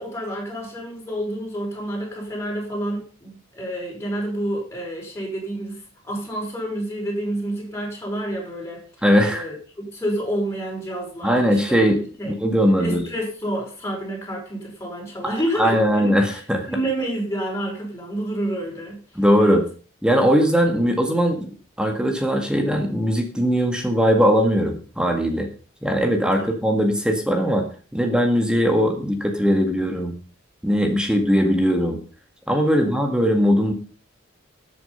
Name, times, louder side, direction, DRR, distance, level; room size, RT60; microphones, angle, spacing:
voice 1, 0.0-8.8 9.2-11.8 12.2-12.3 12.8-16.4 16.7-19.0 19.4-19.6 26.4-26.5 32.7-32.9, right 1 dB, 15° left, -2 dB, 5.3 m, -29 dB
voice 2, 9.0-9.4 11.2-12.0 12.3-13.0 15.2-16.7 19.2-19.6 20.0-21.5 21.8-25.5 25.8-27.7 27.9-30.2 30.6-32.0 32.5-33.7, equal, 5° right, 4 dB, 1.9 m, -20 dB
13.0 x 8.5 x 5.6 m, 0.38 s
head